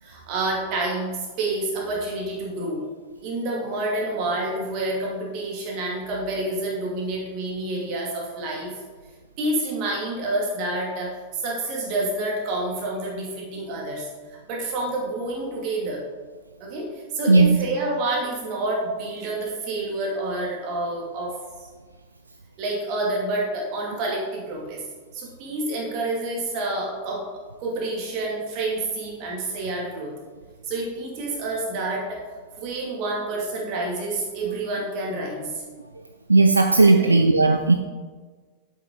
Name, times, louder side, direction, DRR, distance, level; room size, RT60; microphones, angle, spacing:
voice 1, 0.0-2.9 3.2-8.8 9.4-14.1 14.5-16.0 16.6-21.7 22.6-24.8 25.1-27.3 27.6-30.1 30.6-32.2 32.6-35.6 37.0-37.2, right 2 dB, 45° right, -2 dB, 2.4 m, -28 dB
voice 2, 36.3-37.7, right 3 dB, 80° right, 6 dB, 0.4 m, -16 dB
8.1 x 7.2 x 3.8 m, 1.4 s
figure-of-eight pair, 90°, 0 cm